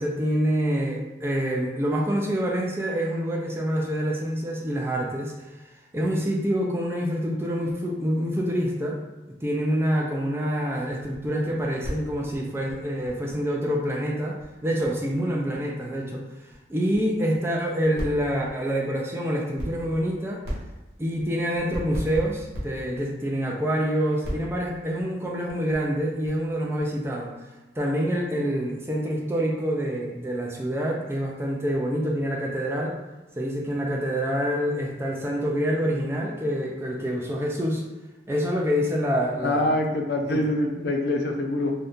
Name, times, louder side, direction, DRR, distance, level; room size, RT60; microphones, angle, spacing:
voice 1, 0.0-5.3 5.9-9.0 9.4-20.4 21.0-27.3 27.8-33.0 33.4-37.8 38.3-39.7 40.2-40.4, equal, 15° right, -1 dB, 0.3 m, -26 dB
sound 1, 10.9-13.7 14.0-14.1 14.3-15.6 15.8-15.9 16.2-16.5 16.9-17.0 17.2-17.5 17.8-18.6 19.4-20.1 20.4-23.2 23.6-23.8 24.2-27.1, equal, 60° right, 1.0 m, -35 dB
voice 2, 39.4-41.7, left 1 dB, 55° left, 3 dB, 0.4 m, -25 dB
2.7 x 2.3 x 3.4 m, 1.1 s
head